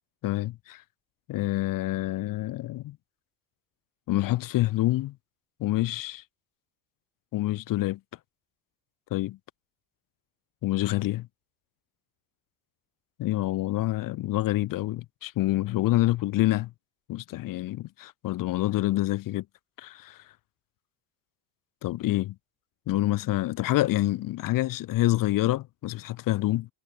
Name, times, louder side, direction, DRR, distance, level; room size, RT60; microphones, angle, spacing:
voice 1, 0.2-0.8 1.3-3.0 4.1-5.2 5.6-6.2 7.3-8.0 9.1-9.4 10.6-11.3 13.2-16.7 17.1-19.4 19.8-20.2 21.8-22.3 22.9-26.7, left 16 dB, 45° left, 0.6 m, -27 dB
cardioid pair, 120°, 48 cm